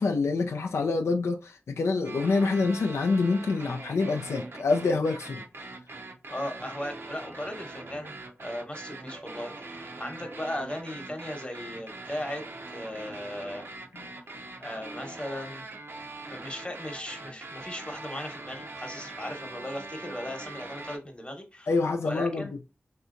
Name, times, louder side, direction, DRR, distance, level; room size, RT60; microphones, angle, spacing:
voice 1, 0.0-5.4 21.7-22.5, left 3 dB, 90° left, 0.3 m, -26 dB
sound 1, 2.0-21.0, right 2 dB, 55° right, 0.5 m, -42 dB
voice 2, 6.3-12.5 12.7-13.7 14.6-15.6 16.3-21.7 22.0-22.5, left 1 dB, 25° left, 0.9 m, -37 dB
3.2 x 2.7 x 2.5 m
cardioid pair, 40°, 5 cm